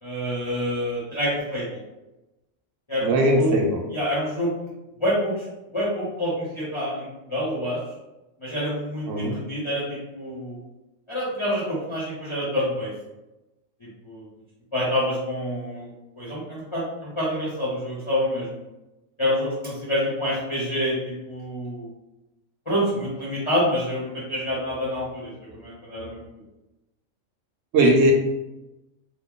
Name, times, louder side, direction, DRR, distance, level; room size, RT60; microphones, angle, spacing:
voice 1, 0.0-1.8 2.9-3.6 3.9-4.5 5.0-5.3 5.7-7.8 8.4-10.6 11.1-12.9 14.0-14.3 14.7-15.9 16.2-18.6 19.2-21.9 22.7-26.2, equal, 25° left, -9 dB, 1.0 m, -27 dB
voice 2, 3.0-3.8 9.1-9.4 27.7-28.1, right 1 dB, 75° right, 0 dB, 1.0 m, -19 dB
3.1 x 2.1 x 3.7 m, 0.99 s
omnidirectional pair, 1.3 m